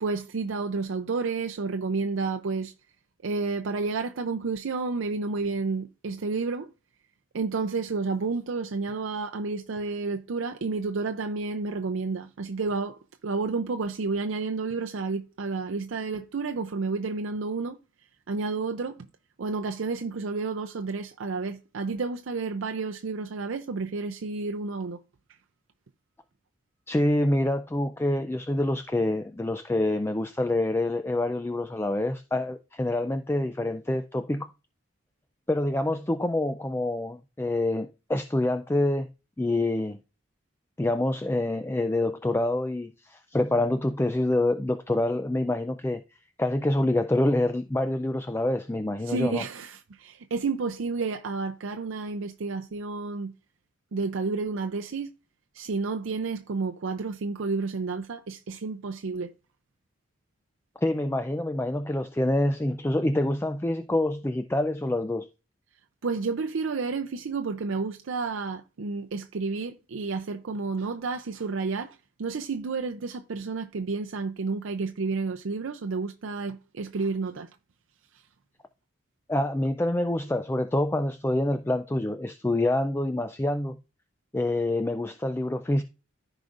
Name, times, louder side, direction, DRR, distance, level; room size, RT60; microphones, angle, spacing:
voice 1, 0.0-2.7 3.2-6.7 7.3-17.8 18.3-19.1 19.4-25.0 49.0-53.3 53.9-55.1 55.5-59.3 66.0-77.5, right 4 dB, 80° right, 0.5 m, -30 dB
voice 2, 26.9-34.5 35.5-39.1 39.4-40.0 40.8-46.0 46.4-49.4 60.8-65.3 79.3-83.8 84.3-85.8, left 1 dB, 10° left, 0.3 m, -26 dB
14.5 x 4.9 x 2.5 m
head